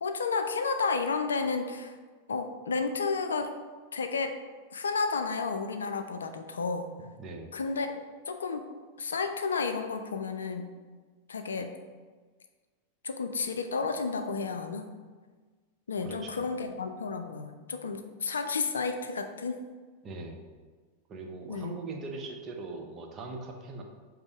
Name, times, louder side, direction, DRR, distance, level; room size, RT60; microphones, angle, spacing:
voice 1, 0.0-1.9 2.3-3.5 3.9-4.4 4.7-6.9 7.5-7.9 8.3-8.6 9.0-10.7 11.3-11.7 13.0-14.9 15.9-19.6 21.5-21.8, left 4 dB, 70° left, 7 dB, 0.3 m, -31 dB
voice 2, 7.2-7.5 16.0-16.5 20.0-20.5 21.1-23.8, right 3 dB, 25° right, 2 dB, 0.6 m, -40 dB
5.2 x 2.0 x 4.5 m, 1.4 s
figure-of-eight pair, 90°, 0 cm